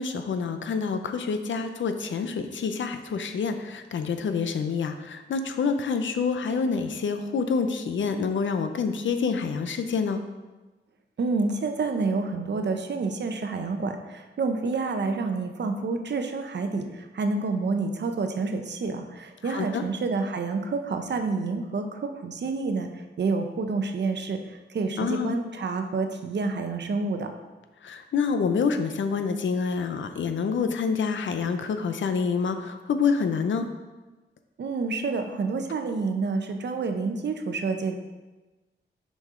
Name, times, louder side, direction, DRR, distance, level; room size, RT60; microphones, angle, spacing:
voice 1, 0.0-10.2 19.4-19.8 25.0-25.3 27.8-33.7, left 5 dB, 90° left, 8 dB, 0.6 m, -27 dB
voice 2, 11.2-22.9 23.2-24.4 24.7-27.3 34.6-37.9, right 4 dB, 65° right, 6 dB, 0.7 m, -28 dB
6.5 x 5.3 x 3.7 m, 1.2 s
wide cardioid pair, 115°, 19 cm